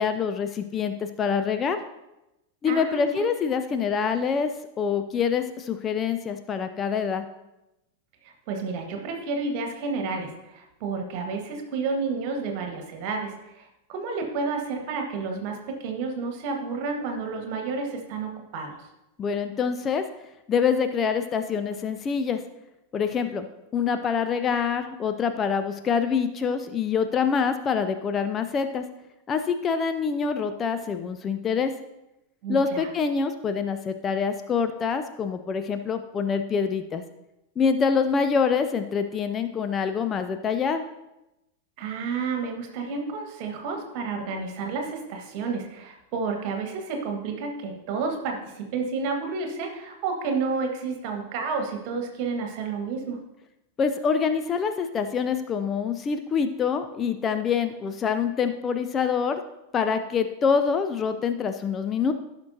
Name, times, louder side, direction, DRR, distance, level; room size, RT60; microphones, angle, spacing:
voice 1, 0.0-1.8 2.6-7.2 19.2-20.0 20.5-22.4 22.9-23.5 23.7-28.8 29.3-31.7 32.5-37.0 37.6-40.8 53.8-59.4 59.7-62.1, left 6 dB, 25° left, 8 dB, 0.5 m, -25 dB
voice 2, 2.7-3.1 8.2-18.8 32.4-32.9 41.8-53.2, right 4 dB, 45° right, 3 dB, 1.6 m, -30 dB
14.5 x 6.1 x 2.8 m, 0.92 s
figure-of-eight pair, 90°, 0 cm